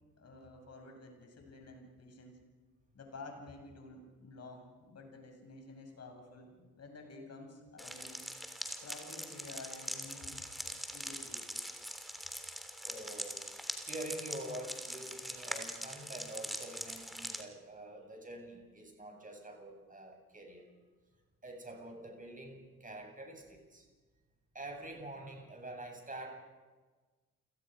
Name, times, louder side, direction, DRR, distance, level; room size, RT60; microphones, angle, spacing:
voice 1, 0.2-2.4 2.9-8.2 8.8-11.5, left 2 dB, 35° left, 3 dB, 7.2 m, -51 dB
sound 1, 7.8-17.4, equal, ahead, 3.4 m, -42 dB
voice 2, 12.8-13.4 13.8-20.7 21.4-23.9 24.5-26.3, right 1 dB, 20° right, 2 dB, 8.0 m, -46 dB
29.5 x 18.5 x 5.3 m, 1.3 s
figure-of-eight pair, 50°, 42 cm